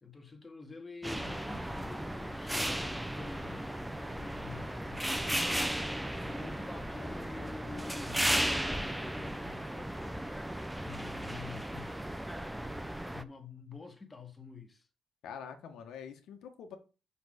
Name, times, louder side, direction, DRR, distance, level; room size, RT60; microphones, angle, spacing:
voice 1, 0.0-5.6 6.2-10.2 10.8-12.3 13.1-14.8, left 4 dB, 20° left, 1.9 m, -48 dB
sound 1, 1.0-13.2, right 1 dB, 5° right, 0.7 m, -35 dB
voice 2, 15.2-16.8, left 7 dB, 80° left, 1.6 m, -45 dB
5.8 x 5.5 x 6.6 m
cardioid pair, 90°, 0 cm